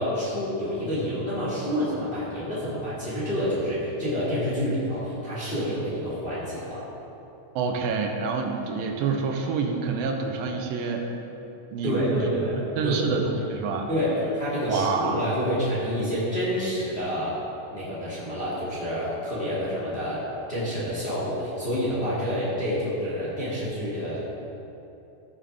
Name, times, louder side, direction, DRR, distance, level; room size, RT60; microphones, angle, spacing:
voice 1, 0.0-6.8 11.8-12.6 12.8-13.2 13.9-17.4 17.7-20.2 20.5-24.2, equal, 20° left, -9 dB, 2.2 m, -28 dB
voice 2, 7.6-11.1 11.7-13.9 14.7-15.2, right 5 dB, 90° right, 2 dB, 2.6 m, -28 dB
15.0 x 7.3 x 3.5 m, 2.9 s
omnidirectional pair, 4.0 m